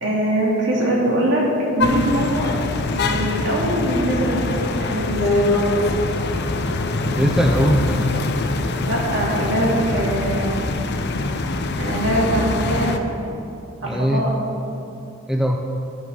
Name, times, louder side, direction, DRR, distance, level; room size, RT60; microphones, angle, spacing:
voice 1, 0.0-1.5 1.7-2.5 3.0-5.8 8.9-10.5 11.8-13.0 13.8-14.3, right 1 dB, 60° right, -5 dB, 2.8 m, -22 dB
sound 1, 1.8-13.0, left 2 dB, 55° left, 0.6 m, -23 dB
voice 2, 7.1-7.9 13.8-14.3 15.3-15.6, equal, 5° right, 2 dB, 0.5 m, -20 dB
11.5 x 7.4 x 5.6 m, 2.7 s
head